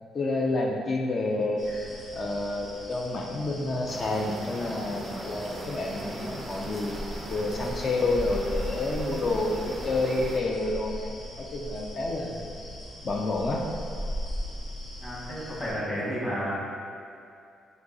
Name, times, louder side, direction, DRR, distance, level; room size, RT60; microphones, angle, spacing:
voice 1, 0.1-1.7 2.1-12.4 13.0-13.7, left 2 dB, 45° left, 0 dB, 0.4 m, -29 dB
sound 1, 1.6-15.7, equal, 80° left, 1.0 m, -39 dB
sound 2, 3.9-10.4, right 2 dB, 35° right, 0.3 m, -40 dB
voice 2, 15.0-16.5, equal, 25° left, -7 dB, 1.4 m, -31 dB
3.7 x 2.9 x 3.9 m, 2.4 s
cardioid pair, 90°, 0 cm